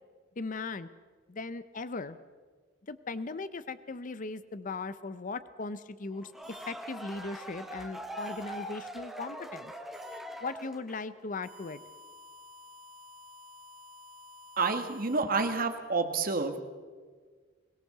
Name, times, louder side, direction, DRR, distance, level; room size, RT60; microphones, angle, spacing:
voice 1, 0.4-0.9 1.3-2.2 2.9-9.7 10.4-11.8, left 3 dB, 45° left, 14 dB, 0.7 m, -38 dB
sound 1, 6.1-11.2, equal, ahead, 1.4 m, -42 dB
sound 2, 6.4-6.7 8.2-8.4 9.9-10.2 11.4-15.2, left 1 dB, 65° right, 3.8 m, -52 dB
voice 2, 14.6-16.6, right 4 dB, 50° right, 7 dB, 1.7 m, -29 dB
22.5 x 18.0 x 6.7 m, 1.5 s
head